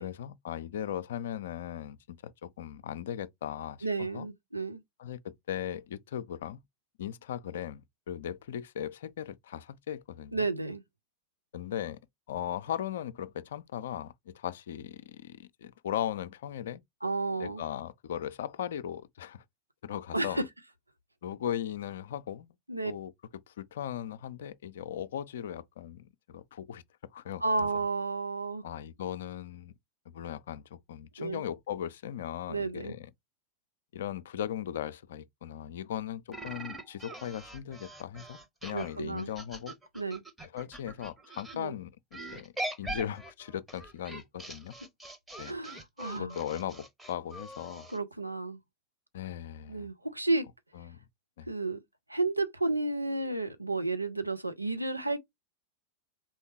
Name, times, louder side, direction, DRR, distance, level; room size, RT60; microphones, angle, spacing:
voice 1, 0.0-4.3 5.0-6.6 7.0-10.5 11.5-12.0 12.3-16.8 17.4-19.4 19.8-20.4 21.2-22.5 22.8-23.1 23.5-26.8 27.1-27.4 28.6-29.7 30.1-33.1 33.9-39.8 40.5-42.5 42.8-44.8 45.4-45.6 46.1-47.9 49.1-49.9 50.8-51.0 51.4-51.5, left 10 dB, 60° left, 0.4 m, -38 dB
voice 2, 3.8-4.8 10.3-10.8 17.0-17.6 20.1-20.4 22.7-22.9 27.4-28.6 31.2-31.4 32.5-33.0 38.7-39.3 39.9-40.2 41.5-41.8 45.5-46.4 47.9-48.6 49.7-50.5 51.5-51.8 52.1-55.2, right 3 dB, 85° right, 0.6 m, -32 dB
sound 1, 36.3-41.6 42.1-48.0, right 1 dB, 10° right, 0.8 m, -42 dB
4.3 x 3.5 x 2.8 m
figure-of-eight pair, 90°, 0 cm